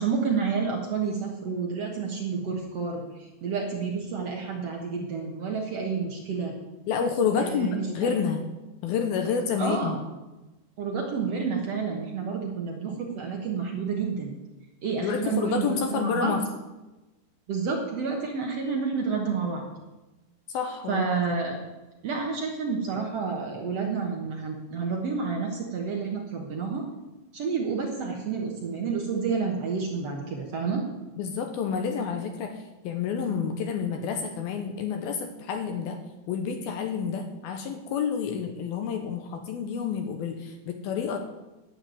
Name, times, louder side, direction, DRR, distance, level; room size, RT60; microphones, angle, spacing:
voice 1, 0.0-3.0 3.4-6.5 7.4-8.1 9.6-9.9 10.8-14.3 14.8-16.3 17.5-19.6 20.9-21.6 22.0-26.8 27.3-30.8, right 5 dB, 70° right, 0 dB, 1.5 m, -29 dB
voice 2, 6.9-8.4 8.8-10.0 15.0-16.4 20.5-21.1 31.2-36.0 36.3-41.2, left 6 dB, 75° left, 5 dB, 2.4 m, -29 dB
12.0 x 6.1 x 9.4 m, 1.1 s
omnidirectional pair, 5.1 m